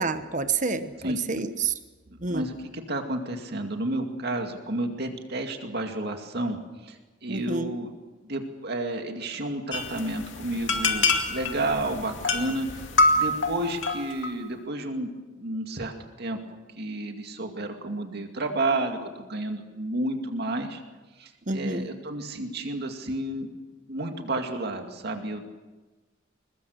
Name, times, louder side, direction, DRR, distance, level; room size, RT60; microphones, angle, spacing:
voice 1, 0.0-1.7 2.2-2.5 7.3-7.7 21.5-21.9, right 4 dB, 40° right, 10 dB, 1.2 m, -28 dB
voice 2, 2.3-6.6 6.8-7.9 8.2-12.8 13.1-15.1 15.4-16.4 16.8-20.8 21.2-23.5 23.9-25.4, right 2 dB, 55° right, 4 dB, 2.3 m, -31 dB
sound 1, 9.7-14.3, left 2 dB, 75° left, 2.4 m, -26 dB
22.5 x 21.0 x 6.6 m, 1.2 s
head